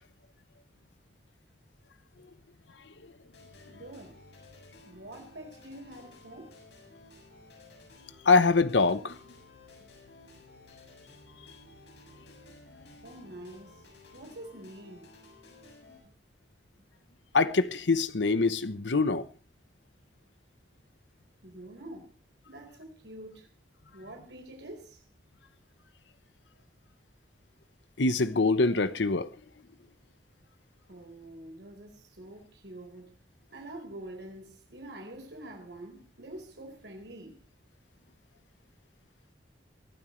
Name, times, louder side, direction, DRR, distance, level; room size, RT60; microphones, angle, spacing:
sound 1, 3.3-16.0, left 2 dB, 75° left, 7.4 m, -54 dB
voice 1, 3.7-4.2 4.9-6.6 13.0-13.8 14.1-15.1 21.4-22.1 22.5-23.5 23.9-25.0 30.9-33.1 33.5-37.4, right 1 dB, 75° right, 4.2 m, -46 dB
voice 2, 8.3-9.1 17.3-19.2 28.0-29.3, left 3 dB, 90° left, 0.9 m, -24 dB
23.5 x 12.5 x 3.2 m
head